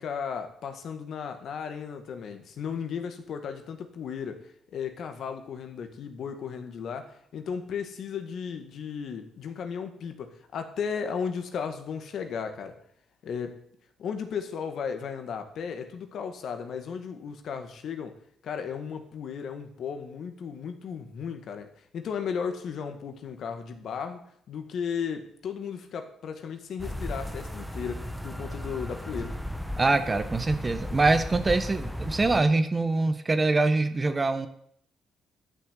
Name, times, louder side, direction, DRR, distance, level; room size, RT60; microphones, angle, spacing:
voice 1, 0.0-12.8 13.2-13.6 14.0-29.4, left 6 dB, 65° left, 7 dB, 1.8 m, -35 dB
sound 1, 26.8-32.4, left 1 dB, ahead, 1.3 m, -35 dB
voice 2, 29.8-34.5, right 3 dB, 25° right, 10 dB, 1.3 m, -24 dB
12.0 x 6.7 x 8.5 m, 0.68 s
cardioid pair, 90°, 0 cm